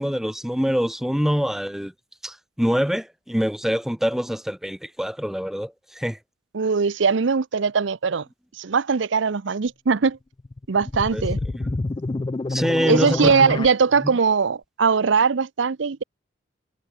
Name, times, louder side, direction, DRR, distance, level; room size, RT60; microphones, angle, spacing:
voice 1, 0.0-1.9 2.2-6.2 11.1-11.2 11.5-11.8 12.5-13.6 14.0-14.1, equal, ahead, 0.7 m, -25 dB
voice 2, 6.5-8.2 8.6-10.2 10.7-11.4 12.9-16.0, right 5 dB, 75° right, 0.6 m, -21 dB
sound 1, 10.4-13.7, left 2 dB, 25° left, 0.4 m, -28 dB
head